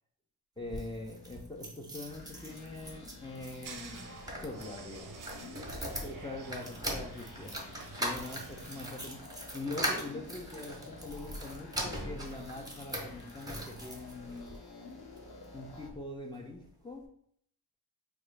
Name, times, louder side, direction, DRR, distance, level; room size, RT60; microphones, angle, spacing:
voice 1, 0.6-4.1 4.4-5.1 5.8-7.6 8.0-14.5 15.1-15.3 15.5-17.1, left 2 dB, 15° left, -1 dB, 0.3 m, -43 dB
sound 1, 0.6-14.6 15.2-16.0 16.3-16.4 16.6-16.7, right 1 dB, 10° right, 0.7 m, -41 dB
sound 2, 2.1-15.9, left 3 dB, 60° left, 0.8 m, -51 dB
sound 3, 3.6-8.9, right 5 dB, 50° right, 0.5 m, -50 dB
3.7 x 2.3 x 3.1 m, 0.65 s
wide cardioid pair, 125°, 43 cm